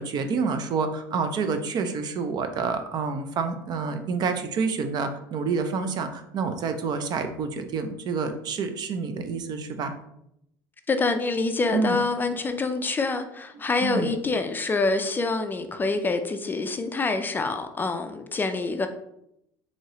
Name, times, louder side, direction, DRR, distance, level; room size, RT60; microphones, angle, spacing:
voice 1, 0.0-9.9 11.7-12.0 13.8-14.1, right 5 dB, 50° right, 8 dB, 0.5 m, -28 dB
voice 2, 10.9-18.9, left 3 dB, 20° left, 7 dB, 0.4 m, -26 dB
4.5 x 2.7 x 2.9 m, 0.79 s
supercardioid pair, 105°, 9 cm